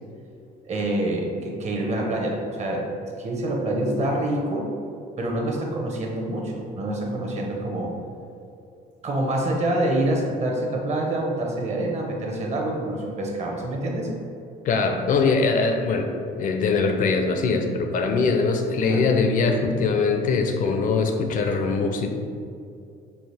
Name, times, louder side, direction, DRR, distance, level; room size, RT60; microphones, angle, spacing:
voice 1, 0.7-2.9 3.2-4.7 5.2-7.9 9.0-14.1 18.9-19.1, right 1 dB, 40° right, -1 dB, 0.8 m, -26 dB
voice 2, 14.6-22.1, left 4 dB, 50° left, 5 dB, 0.5 m, -22 dB
5.6 x 2.4 x 3.3 m, 2.5 s
cardioid pair, 110°, 17 cm